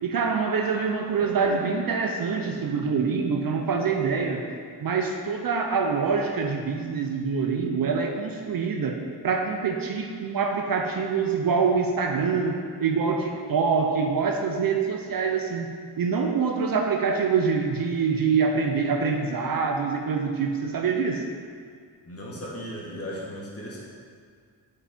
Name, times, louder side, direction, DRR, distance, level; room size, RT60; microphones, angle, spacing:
voice 1, 0.0-4.5 4.8-21.2, right 5 dB, 50° right, 3 dB, 0.6 m, -25 dB
voice 2, 22.0-23.8, equal, 30° left, -5 dB, 1.5 m, -36 dB
5.2 x 5.0 x 4.3 m, 2.1 s
cardioid pair, 90°, 44 cm